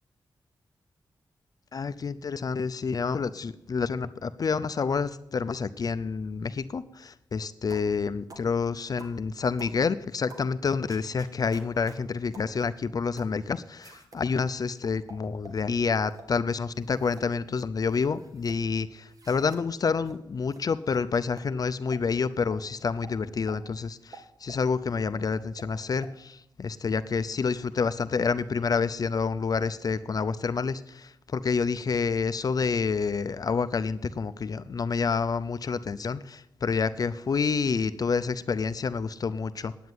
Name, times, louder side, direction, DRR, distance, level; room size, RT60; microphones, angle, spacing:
voice 1, 1.7-39.7, left 5 dB, 50° left, 12 dB, 0.5 m, -28 dB
sound 1, 7.7-7.9 8.3-8.5 9.0-9.2 9.6-9.8 10.3-10.5 10.9-12.0 12.3-12.5 13.2-13.4 13.8-14.2 14.8-15.6 16.1-16.3 16.8-17.3 17.6-18.6 19.1-19.6 20.1-20.2 20.5-20.6 20.9-21.0 21.4-21.5 21.9-22.0 22.5-22.6 23.0-23.2 23.5-23.6 24.1-24.6 25.1-25.2 25.6-25.7 26.0-26.1, right 3 dB, 50° right, 1.9 m, -48 dB
9.4 x 9.3 x 9.6 m, 0.83 s
wide cardioid pair, 120°, 8 cm